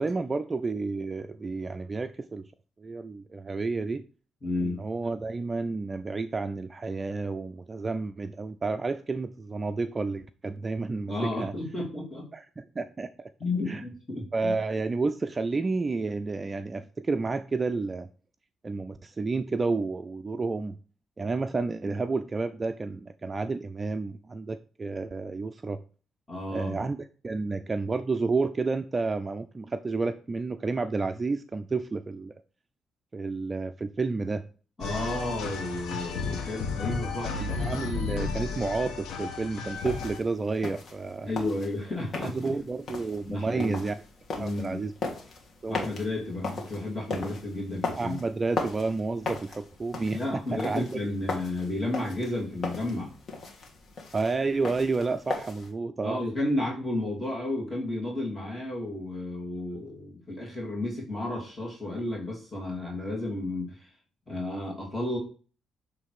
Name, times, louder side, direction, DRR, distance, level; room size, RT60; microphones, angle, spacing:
voice 1, 0.0-2.4 2.8-4.0 4.6-11.5 12.3-13.3 13.7-13.8 14.3-18.1 18.6-20.8 21.2-25.8 26.5-27.0 27.2-32.3 33.1-34.4 37.3-41.3 42.2-44.0 44.4-44.9 45.6-45.9 48.0-51.0 54.1-56.2, right 3 dB, 30° right, 11 dB, 0.4 m, -30 dB
voice 2, 4.4-4.8 11.1-12.2 13.4-14.5 26.3-26.8 34.8-37.4 41.2-42.5 43.2-43.8 44.4-44.8 45.7-48.2 50.1-53.1 56.0-63.9 64.3-65.2, left 2 dB, 20° left, -3 dB, 2.5 m, -32 dB
sound 1, 34.8-40.2, left 5 dB, 85° left, 1.2 m, -33 dB
sound 2, 39.8-55.7, left 3 dB, 50° left, 1.7 m, -38 dB
7.8 x 3.2 x 4.7 m, 0.38 s
cardioid pair, 90°, 0 cm